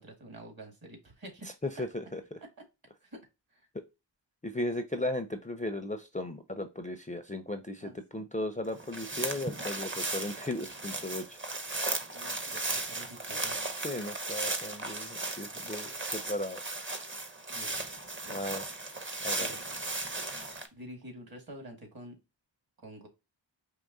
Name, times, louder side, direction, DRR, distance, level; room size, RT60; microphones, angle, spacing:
voice 1, 0.0-1.5 3.0-3.2 3.5-3.7 7.8-8.3 12.1-13.6 17.5-17.8 18.2-18.4 19.4-19.8 20.7-22.2 22.8-23.1, right 1 dB, 50° right, 3 dB, 1.9 m, -48 dB
voice 2, 1.6-2.4 4.4-11.4 13.8-16.6 18.3-18.8 19.2-19.5, left 1 dB, 15° left, 7 dB, 0.5 m, -36 dB
sound 1, 8.7-20.7, right 2 dB, 25° right, 0.8 m, -36 dB
4.8 x 2.9 x 2.6 m, 0.24 s
wide cardioid pair, 65°, 46 cm